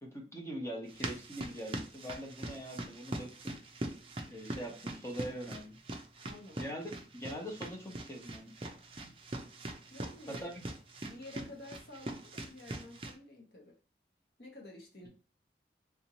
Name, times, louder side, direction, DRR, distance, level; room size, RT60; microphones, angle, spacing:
voice 1, 0.0-3.6 4.3-5.8 6.6-8.5 9.0-9.1 10.3-10.6, equal, 15° left, 0 dB, 0.9 m, -42 dB
sound 1, 0.9-13.2, right 1 dB, 30° right, 0.5 m, -43 dB
voice 2, 6.2-6.7 9.9-10.6 11.0-13.7 14.4-15.1, left 2 dB, 65° left, -1 dB, 1.2 m, -51 dB
3.5 x 2.7 x 3.0 m, 0.36 s
head